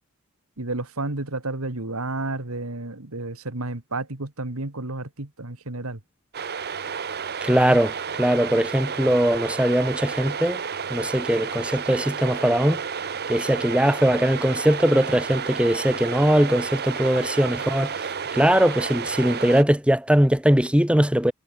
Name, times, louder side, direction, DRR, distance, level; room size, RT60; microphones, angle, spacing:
voice 1, 0.6-6.0, right 2 dB, 75° right, 2.2 m, -31 dB
sound 1, 6.3-19.6, right 6 dB, 50° right, 1.2 m, -31 dB
voice 2, 7.4-10.6 10.9-12.8 13.3-18.0 18.3-21.3, equal, 5° right, 1.5 m, -20 dB
head